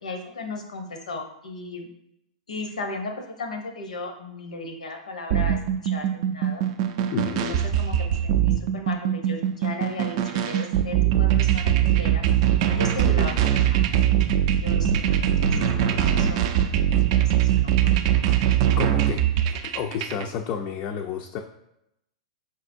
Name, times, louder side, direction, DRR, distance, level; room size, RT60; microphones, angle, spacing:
voice 1, 0.0-1.9 2.5-6.6 7.2-12.2 12.7-13.8 14.5-18.2, left 3 dB, 85° left, 4 dB, 0.7 m, -36 dB
sound 1, 5.3-20.2, right 10 dB, 55° right, 0.4 m, -22 dB
voice 2, 7.1-7.6 13.2-13.3 15.5-16.3 18.8-19.2 19.6-21.4, left 7 dB, 40° left, 3 dB, 0.3 m, -31 dB
5.5 x 2.6 x 2.5 m, 0.83 s
hypercardioid pair, 110°, 4 cm